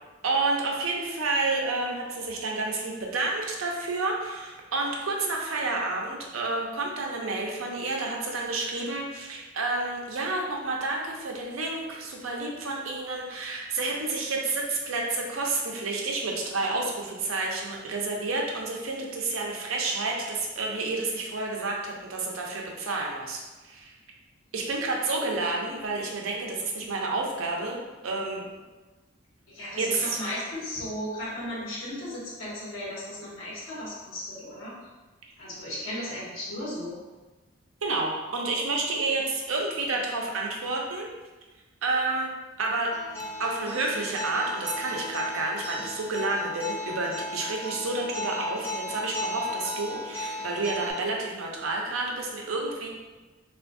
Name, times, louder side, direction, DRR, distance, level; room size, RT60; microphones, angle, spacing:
voice 1, 0.2-23.9 24.5-27.8 28.0-28.4 29.8-30.2 37.8-41.1 41.8-42.3 42.6-42.9 43.4-52.9, right 3 dB, 90° right, -1 dB, 0.6 m, -30 dB
voice 2, 29.5-34.8 35.4-37.0, left 1 dB, 75° left, -8 dB, 1.0 m, -35 dB
Acoustic guitar, 42.9-50.9, left 2 dB, 10° left, 1.4 m, -35 dB
3.4 x 2.4 x 2.5 m, 1.2 s
head